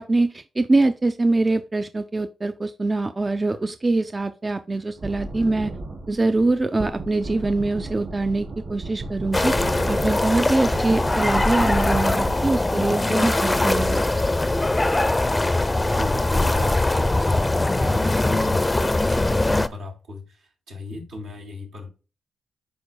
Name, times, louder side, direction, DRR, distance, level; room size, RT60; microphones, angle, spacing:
voice 1, 0.0-5.7 6.1-9.5 9.9-14.0, right 2 dB, 30° right, 0.5 m, -23 dB
sound 1, 5.0-12.6, right 2 dB, 60° right, 3.4 m, -34 dB
sound 2, 9.3-19.7, left 2 dB, 20° left, 0.6 m, -21 dB
voice 2, 15.8-21.9, left 1 dB, 90° right, 3.0 m, -37 dB
11.5 x 4.0 x 2.2 m
supercardioid pair, 50°, 0 cm